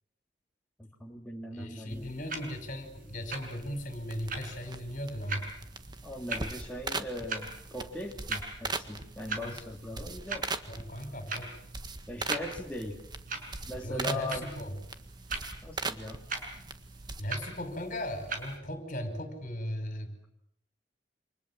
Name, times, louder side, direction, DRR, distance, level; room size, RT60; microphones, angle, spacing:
voice 1, 0.8-2.1 6.0-10.5 12.1-13.0 13.6-14.5 15.6-16.2, left 1 dB, 10° left, -1 dB, 2.6 m, -39 dB
voice 2, 1.5-5.5 9.4-9.6 9.9-10.1 10.7-11.6 13.8-14.7 17.2-20.1, equal, 45° left, 8 dB, 5.7 m, -37 dB
sound 1, 1.9-18.6, right 3 dB, 45° right, 5.9 m, -42 dB
sound 2, 3.3-17.2, right 3 dB, 25° right, 1.6 m, -41 dB
29.0 x 27.0 x 7.6 m, 0.75 s
head